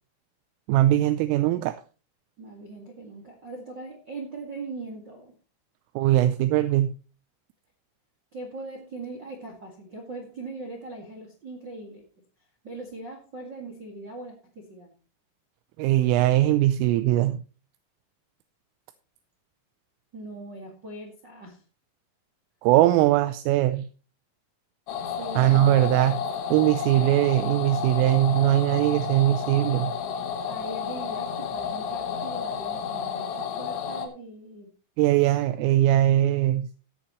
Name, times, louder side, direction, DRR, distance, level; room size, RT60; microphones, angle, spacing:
voice 1, 0.7-1.8 6.0-6.9 15.8-17.4 22.6-23.9 25.4-26.2 26.5-29.9 35.0-36.7, right 14 dB, 85° right, 11 dB, 3.2 m, -21 dB
voice 2, 2.4-5.3 8.3-12.0 12.6-14.9 20.1-21.6 25.0-25.7 30.5-34.7, right 2 dB, 55° right, 1 dB, 1.2 m, -40 dB
sound 1, 24.9-34.1, left 7 dB, 90° left, 4.3 m, -31 dB
16.5 x 8.9 x 3.1 m, 0.35 s
omnidirectional pair, 6.0 m